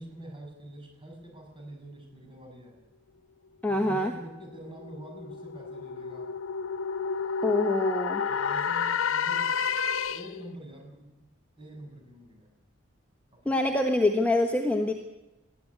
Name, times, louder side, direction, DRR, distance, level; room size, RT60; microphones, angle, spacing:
voice 1, 0.0-2.8 3.7-6.3 8.3-9.5 10.1-11.3 11.6-12.5 13.3-13.5, right 1 dB, 25° right, 2 dB, 6.5 m, -45 dB
voice 2, 3.6-4.1 7.4-8.2 13.4-14.9, left 1 dB, 5° left, 3 dB, 1.2 m, -25 dB
sound 1, 4.3-10.5, left 6 dB, 80° left, 0.8 m, -30 dB
21.0 x 14.5 x 9.7 m, 1.0 s
head